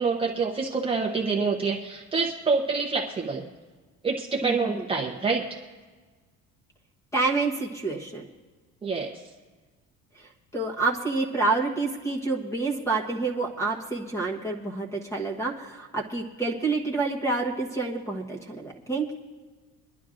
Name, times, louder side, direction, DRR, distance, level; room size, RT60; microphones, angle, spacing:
voice 1, 0.0-3.4 4.0-5.6 8.8-9.2, right 4 dB, 20° right, -1 dB, 0.8 m, -27 dB
voice 2, 4.4-4.8 7.1-8.3 10.5-19.1, right 3 dB, 10° left, 0 dB, 1.2 m, -28 dB
24.5 x 11.0 x 2.5 m, 1.3 s
cardioid pair, 150°, 30 cm